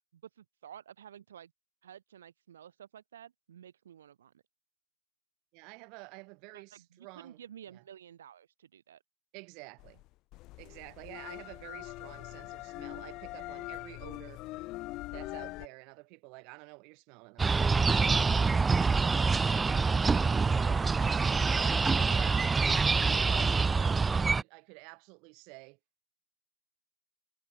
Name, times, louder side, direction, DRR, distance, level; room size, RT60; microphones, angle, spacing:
voice 1, 0.1-1.5 1.8-4.4 6.5-9.0, right 9 dB, 55° right, 2.6 m, -52 dB
voice 2, 5.5-7.4 7.7-7.8 9.3-10.0 10.6-14.4 15.1-19.8 20.5-22.6 23.1-25.8, right 31 dB, 35° right, 7.4 m, -50 dB
sound 1, 9.8-15.7, left 20 dB, 30° left, 3.3 m, -42 dB
sound 2, 17.4-24.4, right 4 dB, 10° right, 0.4 m, -26 dB
figure-of-eight pair, 115°, 0 cm